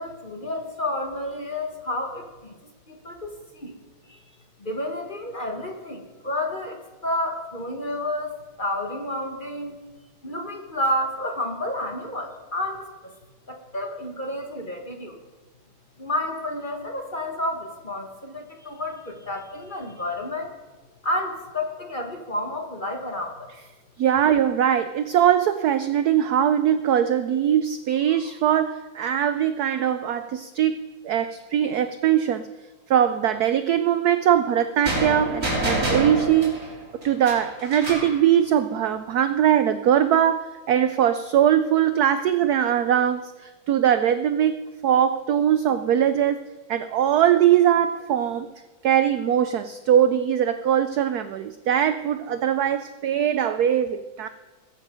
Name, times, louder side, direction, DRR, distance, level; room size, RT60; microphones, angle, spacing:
voice 1, 0.0-2.5 2.9-3.8 4.1-4.3 4.6-9.8 10.2-13.1 13.5-15.2 16.0-20.5 21.0-23.5, left 1 dB, 25° left, 2 dB, 1.3 m, -30 dB
voice 2, 24.0-32.5 32.9-36.7 37.0-46.4 46.7-48.5 48.8-54.3, right 10 dB, 80° right, 10 dB, 0.8 m, -21 dB
sound 1, 34.8-38.2, right 1 dB, 45° right, 4.2 m, -27 dB
21.5 x 7.7 x 5.1 m, 1.2 s
omnidirectional pair, 2.2 m